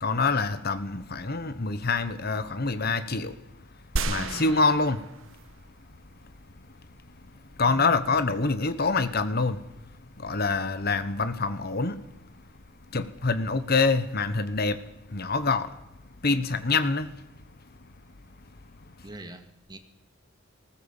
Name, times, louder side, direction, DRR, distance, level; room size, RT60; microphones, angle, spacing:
voice 1, 0.0-3.4 4.0-5.1 7.6-9.6 10.2-12.0 12.9-14.8 15.1-15.7 16.2-17.1, left 3 dB, 50° left, 1.2 m, -26 dB
sound 1, 4.0-5.7 6.2-6.3, right 3 dB, 70° right, 1.2 m, -33 dB
voice 2, 4.2-4.6 19.0-19.8, right 1 dB, 20° right, 2.0 m, -45 dB
20.0 x 18.5 x 7.3 m
head